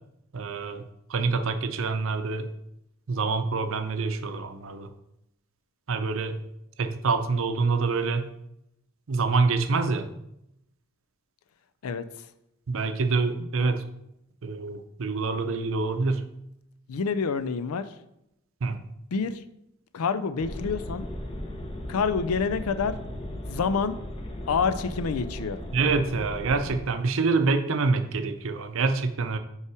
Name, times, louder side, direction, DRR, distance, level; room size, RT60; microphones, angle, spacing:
voice 1, 0.3-0.8 1.1-2.5 3.1-4.9 5.9-6.4 6.8-8.3 9.1-10.1 12.7-13.8 14.4-16.3 18.6-18.8 25.7-29.4, right 4 dB, 65° right, 8 dB, 0.6 m, -26 dB
voice 2, 11.8-12.3 13.4-13.5 16.9-17.9 19.1-19.4 19.9-21.1 21.9-23.0 23.5-24.0 24.5-25.6, left 5 dB, 85° left, 13 dB, 0.5 m, -27 dB
sound 1, 20.4-26.8, left 1 dB, 25° left, 0.8 m, -36 dB
5.5 x 4.8 x 4.8 m, 0.82 s
head